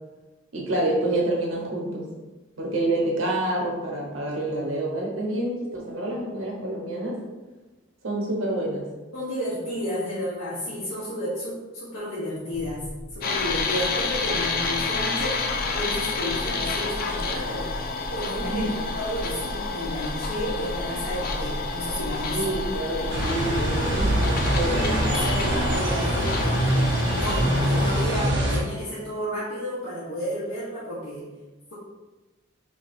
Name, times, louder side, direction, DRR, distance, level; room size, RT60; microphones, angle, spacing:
voice 1, 0.5-2.1 2.6-7.2 8.0-8.9 18.4-18.7 22.3-24.9, right 1 dB, 80° right, -2 dB, 1.0 m, -27 dB
voice 2, 9.1-12.8 13.1-15.4 15.7-17.7 18.1-22.4 24.8-31.3, equal, 70° left, -8 dB, 0.9 m, -32 dB
sound 1, 12.5-25.7, equal, 25° right, 1.2 m, -36 dB
sound 2, 13.2-28.1, left 4 dB, 50° left, 0.4 m, -30 dB
sound 3, 23.1-28.6, right 1 dB, 60° right, 0.8 m, -24 dB
5.2 x 2.7 x 2.6 m, 1.2 s
head